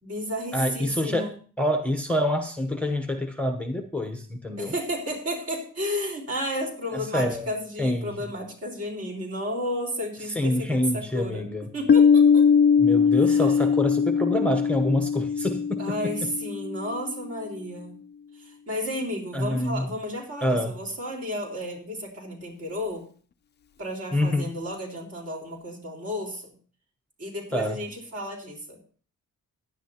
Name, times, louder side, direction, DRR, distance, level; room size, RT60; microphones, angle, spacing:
voice 1, 0.0-1.3 4.6-11.4 11.7-12.4 13.3-13.6 15.8-18.0 18.4-23.1 23.8-26.5 27.2-28.8, equal, 45° right, 0 dB, 4.1 m, -32 dB
voice 2, 0.5-4.7 6.9-7.5 7.8-8.1 10.2-11.7 12.8-15.8 19.3-19.9 20.4-20.8 24.1-24.5 27.5-27.8, left 1 dB, 5° left, 5 dB, 0.8 m, -26 dB
Piano, 11.9-17.3, left 6 dB, 35° left, 0.5 m, -21 dB
16.0 x 10.5 x 2.8 m, 0.42 s
wide cardioid pair, 155°, 32 cm